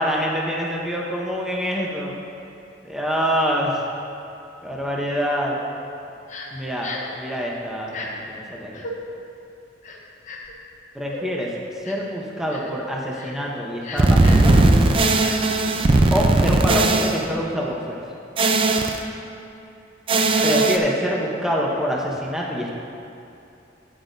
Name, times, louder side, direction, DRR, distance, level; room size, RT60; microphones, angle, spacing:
voice 1, 0.0-2.2 2.8-3.8 4.6-5.6 6.5-6.9 7.1-8.9 10.9-11.5 11.8-14.6 16.1-18.0 20.4-22.7, equal, 5° right, -3 dB, 0.8 m, -25 dB
Crying sobbing, 6.3-6.5 6.8-7.1 7.9-8.1 8.7-8.9 9.8-10.5 11.1-11.2 11.8-12.1 12.5-12.7 13.1-13.3 13.8-14.5 15.2-15.3, left 3 dB, 40° left, 1.0 m, -35 dB
sound 1, 14.0-17.2 18.4-19.0 20.1-20.8, right 2 dB, 30° right, 0.4 m, -17 dB
13.0 x 9.1 x 2.6 m, 2.8 s
head